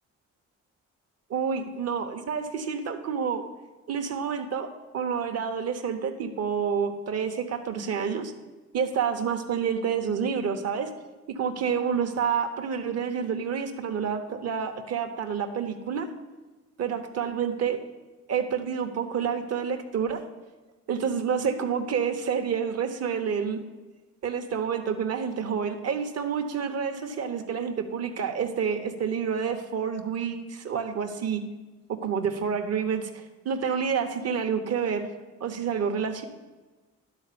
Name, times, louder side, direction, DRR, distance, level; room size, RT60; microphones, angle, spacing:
voice 1, 1.3-3.4 3.9-8.3 8.7-10.9 11.3-16.1 16.8-17.8 18.3-20.2 20.9-23.6 24.2-31.4 31.9-35.1 35.4-36.2, right 7 dB, 55° right, 7 dB, 1.0 m, -28 dB
11.5 x 4.1 x 6.8 m, 1.2 s
cardioid pair, 90°, 30 cm